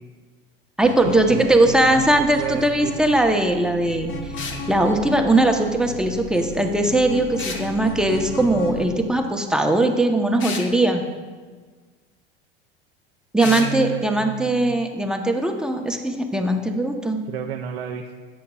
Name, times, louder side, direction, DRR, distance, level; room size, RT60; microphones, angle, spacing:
sound 1, 0.8-8.8, left 1 dB, 60° left, 2.4 m, -34 dB
voice 1, 0.8-4.1 4.7-11.0 13.3-17.2, right 1 dB, ahead, 3 dB, 0.9 m, -20 dB
voice 2, 1.7-2.0 2.4-3.0 13.4-14.8 17.3-18.1, right 9 dB, 90° right, 2 dB, 0.6 m, -31 dB
sound 2, 4.4-4.6 7.4-7.7 10.4-10.7 13.4-13.7, left 4 dB, 40° left, 1.4 m, -31 dB
11.5 x 7.8 x 2.4 m, 1.5 s
hypercardioid pair, 90°, 30 cm